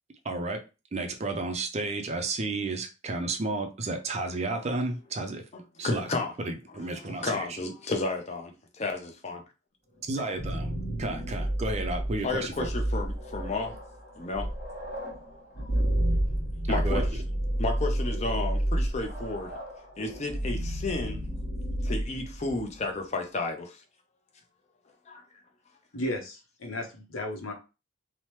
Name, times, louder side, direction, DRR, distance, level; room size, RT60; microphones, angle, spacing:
voice 1, 0.2-0.6 0.9-5.4 5.8-6.1 6.4-7.5 10.1-12.7 16.7-17.1, right 2 dB, 30° right, 0.4 m, -32 dB
voice 2, 5.8-6.3 7.0-9.4 10.2-10.3 12.2-13.7 14.2-14.5 15.6-15.7 16.7-17.1 17.6-19.6 20.0-21.2 21.8-23.8 25.1-25.2 27.2-27.3, left 3 dB, 30° left, 0.5 m, -32 dB
sound 1, 10.1-23.0, right 1 dB, 50° left, 1.2 m, -30 dB
voice 3, 25.9-27.5, left 1 dB, 75° left, 0.7 m, -34 dB
2.9 x 2.0 x 3.1 m
head